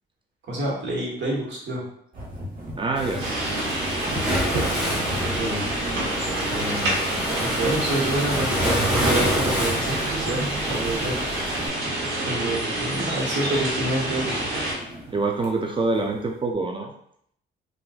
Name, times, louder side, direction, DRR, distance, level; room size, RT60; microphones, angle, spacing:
voice 1, 0.5-1.8 4.1-4.2 5.2-5.6 6.4-7.0 7.4-11.1 12.2-14.4, right 1 dB, 65° right, -4 dB, 1.4 m, -28 dB
sound 1, 2.1-16.4, equal, 45° right, 1.2 m, -41 dB
voice 2, 2.8-3.2 15.1-16.9, right 3 dB, 25° right, 2 dB, 0.4 m, -25 dB
Waves surf, 2.9-11.7, equal, 5° right, 1.2 m, -27 dB
sound 2, 3.2-14.7, right 1 dB, 85° right, 1.1 m, -28 dB
3.7 x 2.5 x 2.5 m, 0.68 s
cardioid pair, 90°, 20 cm